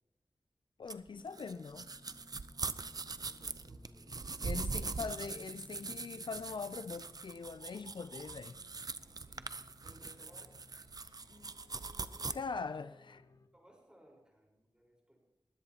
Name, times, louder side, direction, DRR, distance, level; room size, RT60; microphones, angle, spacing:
voice 1, 0.8-1.8 4.4-8.6 12.3-13.2, left 5 dB, 65° left, 0.4 m, -42 dB
sound 1, 0.9-12.3, right 4 dB, 45° right, 0.6 m, -42 dB
sound 2, 1.1-13.5, left 2 dB, 40° left, 1.0 m, -61 dB
voice 2, 1.3-1.6 3.1-4.2 9.8-10.5 12.8-13.0 13.5-15.2, equal, 10° right, 4.5 m, -62 dB
sound 3, 5.3-12.7, right 2 dB, 85° right, 2.6 m, -67 dB
21.0 x 16.0 x 2.9 m
wide cardioid pair, 95°, 9 cm